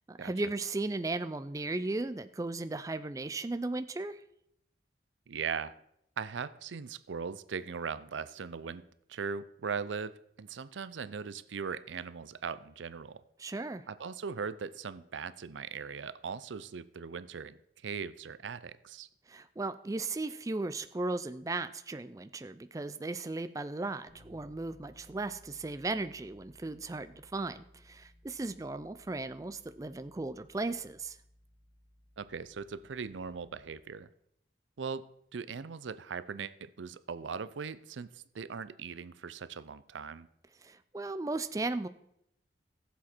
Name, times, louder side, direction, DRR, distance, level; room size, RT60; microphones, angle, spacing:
voice 1, 0.1-4.2 13.4-13.8 19.3-31.2 40.6-41.9, right 2 dB, 20° right, 12 dB, 0.3 m, -36 dB
voice 2, 5.3-5.8 6.2-8.8 9.1-13.2 13.9-17.6 17.8-19.1 32.2-34.1 34.8-35.1 35.3-40.3, right 6 dB, 90° right, 16 dB, 0.5 m, -39 dB
Bass guitar, 24.1-33.9, left 1 dB, 30° left, 4.9 m, -61 dB
15.5 x 7.4 x 4.4 m, 0.76 s
head